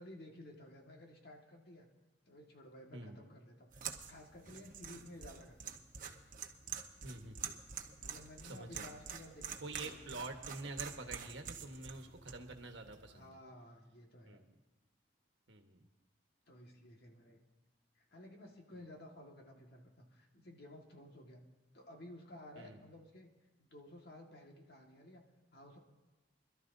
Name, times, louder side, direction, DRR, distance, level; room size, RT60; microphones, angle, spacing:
voice 1, 0.0-1.9 2.3-5.9 8.0-10.3 13.1-14.4 16.5-17.4 18.0-21.4 21.7-23.3 23.6-25.2 25.5-25.8, left 1 dB, 60° left, 1 dB, 1.7 m, -55 dB
sound 1, 3.7-13.3, right 7 dB, 45° right, 1.0 m, -47 dB
voice 2, 7.0-7.6 8.4-9.0 9.6-13.4 14.2-14.5 15.5-15.9 18.7-18.8 22.6-22.8, right 2 dB, 85° right, 5 dB, 1.3 m, -47 dB
25.5 x 12.5 x 2.7 m, 1.1 s
head